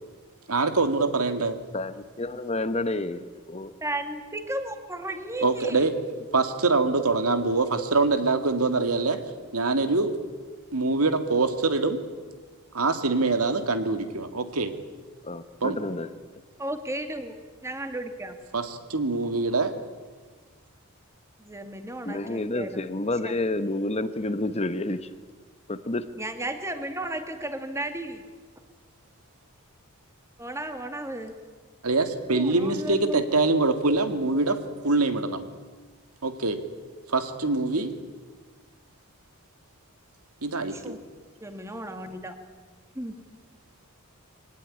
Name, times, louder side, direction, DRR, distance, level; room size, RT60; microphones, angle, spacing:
voice 1, 0.5-1.6 5.4-5.9 6.3-9.2 9.5-10.1 10.7-12.0 12.7-14.7 15.6-15.8 18.5-19.7 31.8-34.6 34.8-35.4 36.2-36.6 37.1-37.9 40.4-41.0, right 3 dB, 85° right, 8 dB, 2.1 m, -24 dB
voice 2, 1.7-3.7 15.2-16.1 22.0-25.1 25.7-26.1, left 2 dB, 30° left, 12 dB, 0.9 m, -29 dB
voice 3, 3.8-5.9 16.6-17.4 17.6-18.4 21.4-22.9 23.2-23.3 26.2-28.2 30.4-31.3 32.3-33.3 40.7-41.0 41.4-42.4 43.0-43.2, right 1 dB, 15° right, 7 dB, 2.1 m, -34 dB
23.5 x 18.5 x 9.9 m, 1.4 s
head